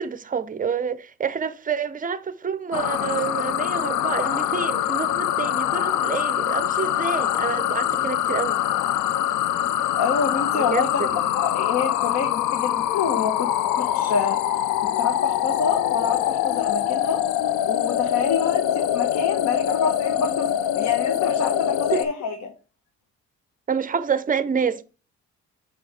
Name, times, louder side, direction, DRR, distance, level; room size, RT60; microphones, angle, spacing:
voice 1, 0.0-8.6 10.5-11.1 21.9-22.0 23.7-24.8, right 6 dB, 30° right, 0.6 m, -28 dB
sound 1, 2.7-22.0, left 11 dB, 90° left, 0.6 m, -24 dB
voice 2, 10.0-10.9 11.3-13.5 13.8-14.4 14.8-17.2 17.6-20.5 20.8-22.5, left 6 dB, 65° left, 1.1 m, -27 dB
7.4 x 3.5 x 4.7 m
cardioid pair, 90°, 30 cm